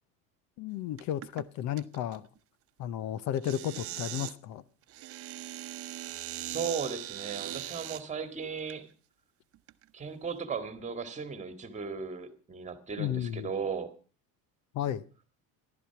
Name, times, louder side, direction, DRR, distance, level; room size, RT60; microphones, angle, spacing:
voice 1, 0.6-2.3 2.8-4.6 13.0-13.5 14.7-15.0, left 11 dB, 60° left, 0.9 m, -33 dB
sound 1, 1.0-1.4 1.8-2.2 3.4-4.3 4.9-8.0 8.7-8.8 9.5-9.8, right 14 dB, 40° right, 0.9 m, -40 dB
voice 2, 6.3-8.9 9.9-13.9, right 5 dB, 20° right, 2.0 m, -36 dB
14.5 x 12.5 x 5.8 m
cardioid pair, 150°, 34 cm